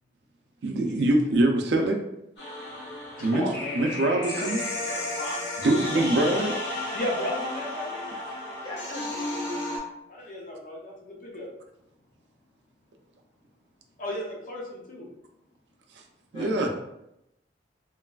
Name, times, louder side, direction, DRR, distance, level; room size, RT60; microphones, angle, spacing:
voice 1, 0.6-2.0 3.2-3.4 3.7-4.6 5.6-6.5 16.3-16.7, right 1 dB, 70° right, 3 dB, 0.4 m, -23 dB
sound 1, 2.4-9.8, left 2 dB, 70° left, 1.1 m, -33 dB
voice 2, 3.2-3.8 6.9-8.1 10.1-11.5 14.0-15.1, left 1 dB, 45° left, -2 dB, 0.5 m, -34 dB
voice 3, 4.9-5.6 8.6-9.5 16.3-16.7, left 1 dB, 25° left, -7 dB, 1.1 m, -39 dB
3.1 x 2.3 x 2.3 m, 0.85 s
head